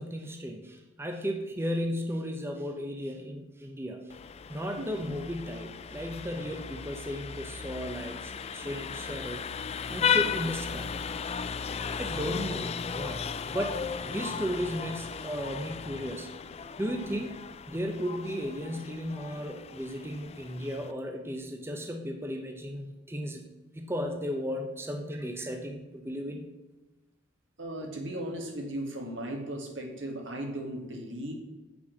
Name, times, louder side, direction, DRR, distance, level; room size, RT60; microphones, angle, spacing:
voice 1, 0.0-4.0 4.5-9.4 9.9-11.0 12.0-16.3 16.8-17.4 17.7-23.4 23.8-26.5, equal, 15° right, 3 dB, 0.7 m, -35 dB
Vehicle horn car horn honking, 4.1-20.9, left 7 dB, 30° left, 0.3 m, -35 dB
voice 2, 27.6-31.3, right 1 dB, 70° right, 1 dB, 2.0 m, -37 dB
7.8 x 6.1 x 6.4 m, 1.1 s
head